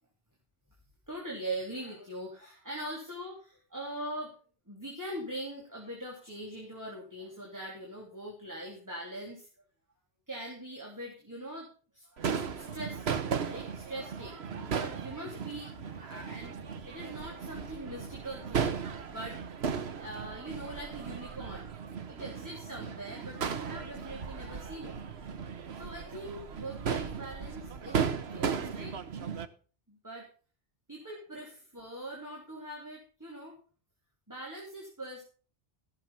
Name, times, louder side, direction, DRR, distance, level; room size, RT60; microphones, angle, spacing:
voice 1, 1.1-4.3 4.7-9.5 10.3-11.7 11.9-19.4 20.0-21.7 22.1-25.0 25.7-28.9 29.9-30.3 30.9-33.6 34.3-35.2, right 1 dB, 15° right, -3 dB, 3.1 m, -42 dB
Crowd / Fireworks, 12.2-29.5, right 6 dB, 90° right, 1.3 m, -36 dB
15.0 x 7.4 x 5.6 m, 0.39 s
omnidirectional pair, 1.0 m